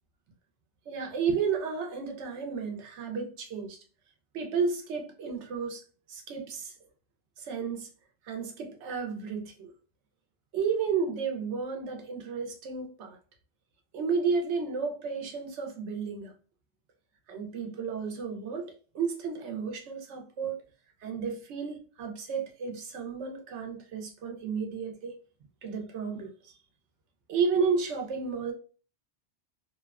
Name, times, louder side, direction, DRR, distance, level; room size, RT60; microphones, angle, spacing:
voice 1, 0.9-3.8 4.3-5.8 6.1-6.7 7.4-7.9 8.2-9.7 10.5-13.2 13.9-16.3 17.3-20.6 21.0-25.2 25.6-26.5 27.3-28.5, right 5 dB, 90° right, 0.9 m, -32 dB
2.9 x 2.1 x 2.3 m
omnidirectional pair, 1.1 m